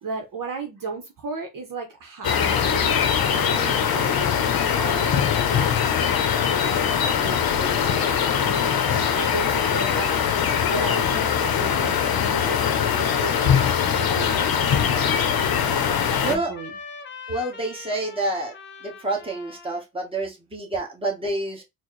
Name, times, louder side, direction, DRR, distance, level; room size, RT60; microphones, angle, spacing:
voice 1, 0.0-4.4 4.7-5.9 6.6-10.2 10.7-14.8 16.1-16.7, right 3 dB, 65° right, 0.9 m, -35 dB
sound 1, 2.2-16.4, left 8 dB, 85° left, 0.7 m, -22 dB
Trumpet, 12.2-19.8, left 4 dB, 30° left, 0.9 m, -41 dB
voice 2, 16.2-16.5 17.3-18.5 18.8-21.6, right 2 dB, 15° right, 1.3 m, -28 dB
4.4 x 2.2 x 3.1 m
cardioid pair, 100°, 35 cm